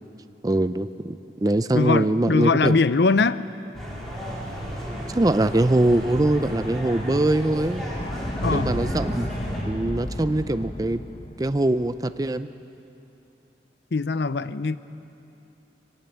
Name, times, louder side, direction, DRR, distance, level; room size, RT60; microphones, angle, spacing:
voice 1, 0.4-2.8 5.1-7.8 8.5-9.3 9.7-11.0 11.4-12.5, right 1 dB, 20° right, 11 dB, 0.4 m, -22 dB
voice 2, 1.7-3.4 8.4-8.8 13.9-14.8, left 4 dB, 70° left, 15 dB, 0.6 m, -21 dB
sound 1, 3.7-9.6, equal, ahead, 4.1 m, -32 dB
sound 2, 7.9-11.9, left 1 dB, 30° left, 0.8 m, -33 dB
23.0 x 18.0 x 8.1 m, 2.8 s
head